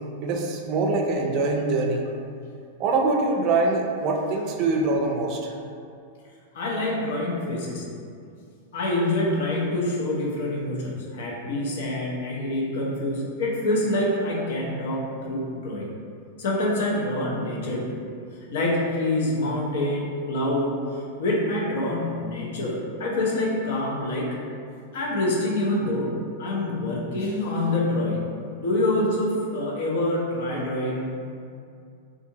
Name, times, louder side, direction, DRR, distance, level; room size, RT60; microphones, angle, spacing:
voice 1, 0.2-2.0 2.8-5.5, right 3 dB, 45° right, 1 dB, 0.4 m, -24 dB
voice 2, 6.5-7.8 8.7-15.9 16.4-18.2 18.5-20.7 21.2-24.3 24.9-28.2 28.6-31.2, left 1 dB, 65° left, -4 dB, 0.6 m, -26 dB
2.6 x 2.4 x 2.7 m, 2.4 s
hypercardioid pair, 100°, 0 cm